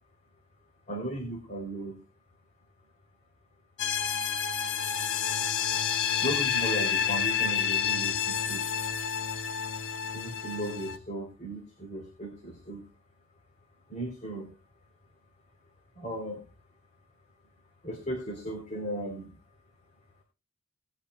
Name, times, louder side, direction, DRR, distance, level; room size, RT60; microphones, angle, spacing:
voice 1, 0.9-2.0 6.2-8.6 10.1-12.8 13.9-14.5 16.0-16.4 17.8-19.3, right 1 dB, 30° left, 0 dB, 3.6 m, -36 dB
sound 1, 3.8-11.0, left 8 dB, 55° left, 0.9 m, -29 dB
20.0 x 11.5 x 2.3 m, 0.30 s
head